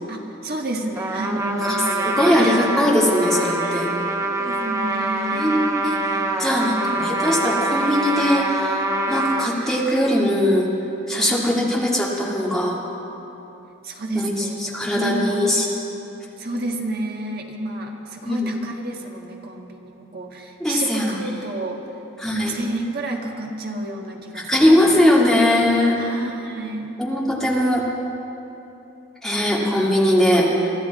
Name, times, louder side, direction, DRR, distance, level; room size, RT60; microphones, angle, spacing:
voice 1, 0.1-2.9 3.6-3.9 4.2-5.6 9.5-9.7 11.1-11.5 13.8-15.6 16.4-21.8 22.3-24.9 25.9-27.0, right 1 dB, 45° right, 1 dB, 1.6 m, -30 dB
Trumpet, 0.9-9.5, right 2 dB, 15° right, 0.8 m, -24 dB
voice 2, 2.1-3.9 5.3-6.0 6.4-10.7 11.1-12.8 14.2-14.3 14.6-15.7 18.2-18.5 20.6-21.1 22.2-22.5 24.3-26.0 27.0-27.9 29.2-30.7, left 1 dB, ahead, -4 dB, 2.0 m, -20 dB
23.5 x 13.5 x 4.2 m, 3.0 s
head